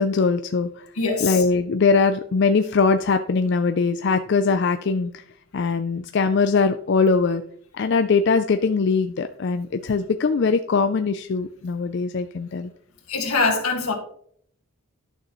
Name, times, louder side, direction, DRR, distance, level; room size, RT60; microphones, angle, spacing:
voice 1, 0.0-0.9 1.2-5.2 5.5-7.4 7.7-12.7, left 4 dB, 55° left, 0.4 m, -21 dB
voice 2, 1.0-1.4 13.1-13.9, left 4 dB, 90° left, 1.9 m, -23 dB
11.0 x 6.6 x 3.1 m
head